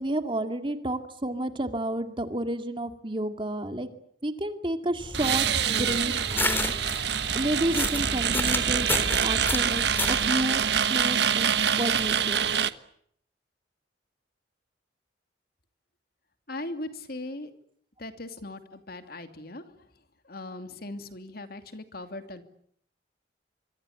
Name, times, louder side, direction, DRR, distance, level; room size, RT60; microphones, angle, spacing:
voice 1, 0.0-3.9 4.2-6.7 7.3-10.6 10.9-11.5 11.7-12.5, right 1 dB, 25° right, 8 dB, 2.2 m, -31 dB
sound 1, 5.0-10.3, left 2 dB, 10° left, 3.6 m, -32 dB
sound 2, 5.1-12.7, right 8 dB, 65° right, 1.2 m, -26 dB
voice 2, 16.5-17.5 18.0-19.9 20.2-22.4, left 2 dB, 55° left, 8 dB, 2.7 m, -39 dB
26.0 x 24.0 x 8.4 m, 0.68 s
head